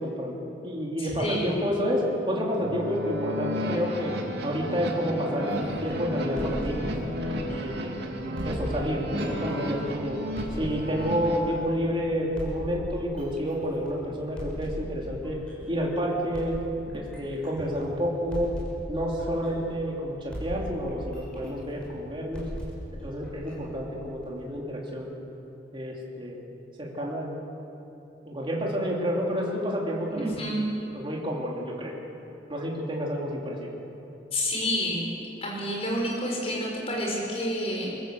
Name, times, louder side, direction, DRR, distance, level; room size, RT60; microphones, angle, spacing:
voice 1, 0.0-4.2 4.4-6.9 7.5-8.1 8.4-10.2 10.5-15.4 15.7-16.6 16.9-18.5 18.9-22.5 23.0-25.1 25.7-26.4 26.8-27.3 28.2-30.5 30.9-31.9 32.5-33.7, equal, 30° right, -2 dB, 3.1 m, -29 dB
voice 2, 1.0-1.6 30.1-30.7 34.3-35.1 35.4-37.9, equal, 35° left, -2 dB, 5.6 m, -29 dB
sound 1, 2.6-11.4, equal, 65° right, 2.7 m, -33 dB
sound 2, 5.5-7.9 8.4-11.9 12.4-15.9 16.3-20.0 20.3-24.4, equal, 5° left, 5.6 m, -39 dB
24.5 x 14.0 x 7.8 m, 2.9 s
head